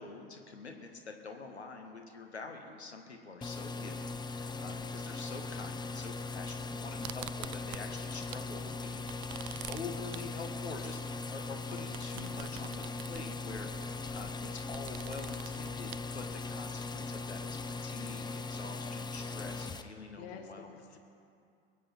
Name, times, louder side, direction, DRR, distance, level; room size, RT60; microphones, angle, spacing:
voice 1, 0.0-20.8, left 4 dB, 85° left, 4 dB, 1.5 m, -46 dB
sound 1, 3.4-19.8, left 3 dB, 15° left, 0.7 m, -39 dB
voice 2, 4.4-5.0 14.2-14.6 20.2-21.0, left 7 dB, 55° left, 6 dB, 1.3 m, -51 dB
sound 2, 7.0-8.5 8.8-16.7, right 18 dB, 35° right, 0.4 m, -48 dB
22.5 x 8.5 x 6.0 m, 2.5 s
figure-of-eight pair, 80°, 32 cm